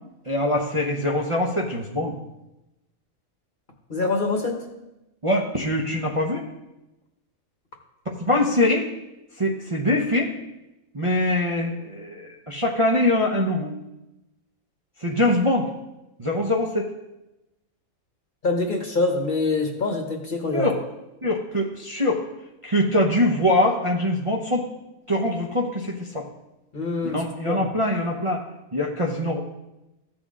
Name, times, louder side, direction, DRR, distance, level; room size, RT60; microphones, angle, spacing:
voice 1, 0.2-2.1 5.2-6.4 8.1-8.9 9.4-10.3 10.9-13.8 15.0-15.7 16.2-16.9 20.5-20.8 21.2-22.2 22.6-24.7 25.1-26.3 27.1-28.4 28.7-29.4, left 1 dB, 25° right, -3 dB, 0.8 m, -23 dB
voice 2, 3.9-4.6 18.4-20.7 26.7-27.2 27.5-27.6, left 3 dB, 35° left, 2 dB, 1.2 m, -25 dB
15.0 x 6.2 x 3.7 m, 0.98 s
omnidirectional pair, 1.5 m